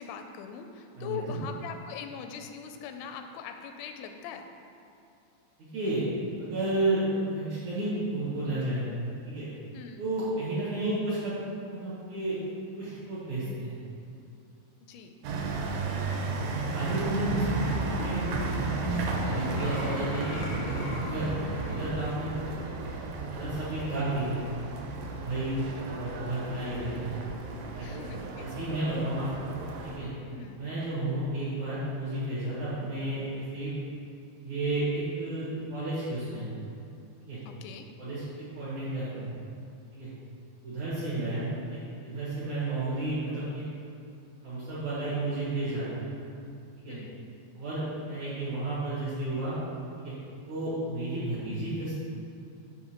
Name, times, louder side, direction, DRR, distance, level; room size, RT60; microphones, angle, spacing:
voice 1, 0.0-4.4 9.7-10.0 14.8-15.1 27.8-28.7 30.3-30.6 37.5-37.9 46.9-47.2, left 7 dB, 85° left, 6 dB, 2.8 m, -41 dB
voice 2, 1.0-1.4 5.7-6.1 6.4-8.8 9.2-9.5 10.0-11.4 11.7-12.4 12.8-13.7 16.7-18.2 19.2-21.3 21.6-22.4 23.3-24.4 25.1-25.6 25.9-27.2 27.7-27.9 28.4-29.5 29.8-30.1 30.6-33.7 34.4-36.5 37.2-37.4 38.0-39.3 39.9-40.1 40.6-41.8 42.0-43.6 44.4-45.9 46.8-47.0 47.6-49.6 50.0-50.1 50.5-52.0, right 2 dB, 55° right, -10 dB, 2.2 m, -32 dB
sound 1, 15.2-30.0, right 3 dB, 80° right, 2.8 m, -34 dB
sound 2, 17.3-22.0, equal, 45° left, 1.1 m, -36 dB
7.3 x 6.1 x 4.4 m, 2.6 s
omnidirectional pair, 5.3 m